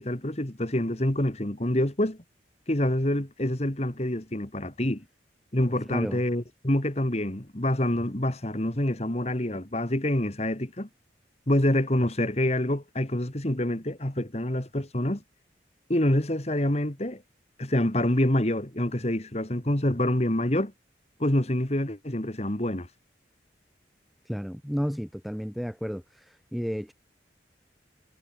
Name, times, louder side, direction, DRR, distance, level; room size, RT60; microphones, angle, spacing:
voice 1, 0.0-2.2 2.7-5.0 5.5-10.9 11.5-15.2 15.9-17.2 17.6-20.7 21.2-22.9, left 1 dB, 35° left, 2.0 m, -26 dB
voice 2, 5.9-6.2 24.2-26.9, equal, ahead, 2.4 m, -32 dB
head